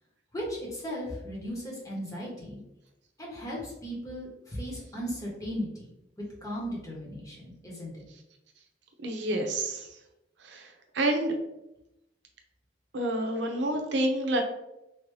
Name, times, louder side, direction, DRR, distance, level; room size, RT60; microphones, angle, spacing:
voice 1, 0.3-2.6 3.2-5.9 6.4-7.9, equal, 20° left, -4 dB, 1.0 m, -36 dB
voice 2, 9.0-9.9 10.4-10.7 10.9-11.3 12.9-14.4, right 1 dB, 85° right, 4 dB, 0.6 m, -28 dB
3.2 x 2.6 x 3.1 m, 0.88 s
head